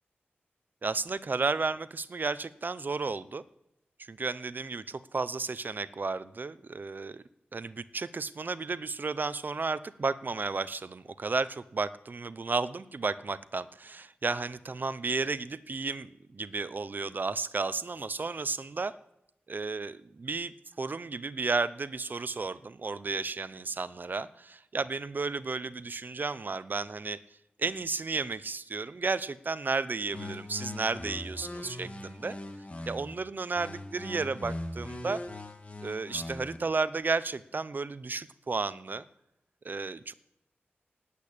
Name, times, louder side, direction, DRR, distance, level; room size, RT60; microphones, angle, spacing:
voice 1, 0.8-3.4 4.1-7.2 7.5-18.9 19.5-27.2 27.6-32.4 32.9-35.2 35.8-39.1 39.6-40.1, right 4 dB, 50° right, 16 dB, 0.7 m, -33 dB
sound 1, 30.1-33.1 33.6-36.6, left 1 dB, 35° left, 2.0 m, -40 dB
18.5 x 8.6 x 8.6 m, 0.87 s
wide cardioid pair, 110°, 4 cm